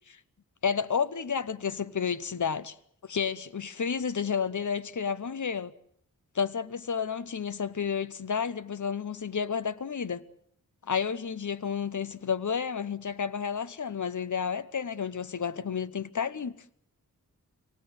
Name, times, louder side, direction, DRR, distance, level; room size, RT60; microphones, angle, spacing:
voice 1, 0.6-2.7 3.0-5.7 6.3-10.2 10.9-16.6, left 6 dB, 60° left, 1.0 m, -31 dB
26.0 x 18.0 x 7.9 m
wide cardioid pair, 70°, 34 cm